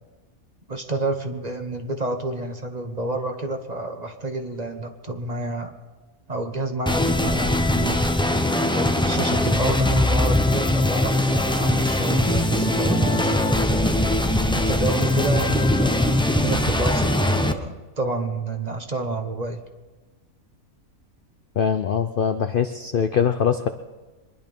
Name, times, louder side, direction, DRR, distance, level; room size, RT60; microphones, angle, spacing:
voice 1, 0.7-5.7 6.3-8.0 8.7-14.0 14.5-19.6, right 2 dB, 30° right, 5 dB, 1.1 m, -29 dB
sound 1, 6.9-17.5, left 1 dB, 5° left, 0.5 m, -21 dB
voice 2, 21.6-23.7, left 7 dB, 55° left, 8 dB, 0.6 m, -22 dB
24.0 x 10.5 x 5.3 m, 1.2 s
omnidirectional pair, 1.5 m